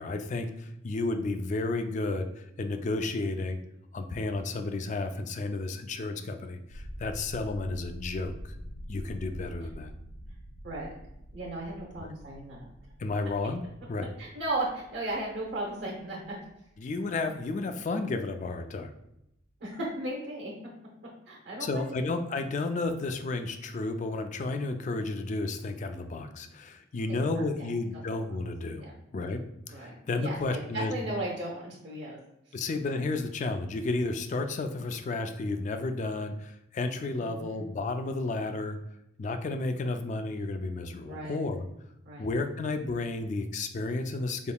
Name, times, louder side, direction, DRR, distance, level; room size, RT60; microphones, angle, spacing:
voice 1, 0.0-3.6 3.9-8.5 8.9-9.9 13.0-13.6 13.9-14.1 16.8-18.9 21.6-28.9 29.1-30.9 32.5-38.8 39.2-41.7 42.2-44.5, left 3 dB, 40° left, 7 dB, 0.3 m, -32 dB
sound 1, 6.7-18.6 18.8-19.2 19.5-19.7, equal, 75° left, 0.6 m, -46 dB
voice 2, 11.3-12.7 14.2-16.4 19.6-20.5 21.3-21.9 27.1-27.2 27.6-28.0 28.8-29.0 29.7-32.2 32.5-32.6 37.2-37.7 41.1-41.4 42.1-42.3, right 1 dB, 55° right, -4 dB, 0.7 m, -36 dB
4.5 x 3.6 x 2.2 m, 0.84 s
head